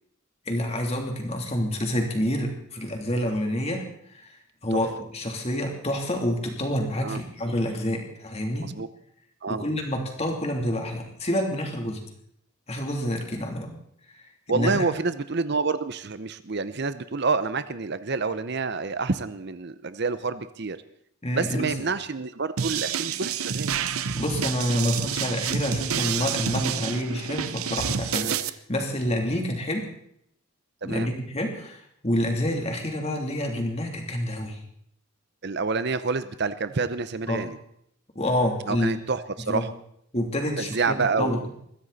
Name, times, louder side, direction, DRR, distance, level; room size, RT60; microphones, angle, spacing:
voice 1, 0.5-4.4 4.6-8.7 9.5-12.0 12.7-13.7 14.1-14.8 21.2-21.7 24.1-29.9 30.8-34.6 37.3-37.4 38.1-38.9 39.5-39.7 40.1-41.5, left 1 dB, 30° left, 2 dB, 3.1 m, -28 dB
voice 2, 14.5-20.8 21.3-23.7 28.2-28.4 30.8-31.1 35.4-37.6 38.7-39.7 40.6-41.5, right 4 dB, 50° right, 13 dB, 0.7 m, -28 dB
sound 1, 22.6-28.5, right 7 dB, 90° right, 0.9 m, -29 dB
22.0 x 15.0 x 4.2 m, 0.69 s
head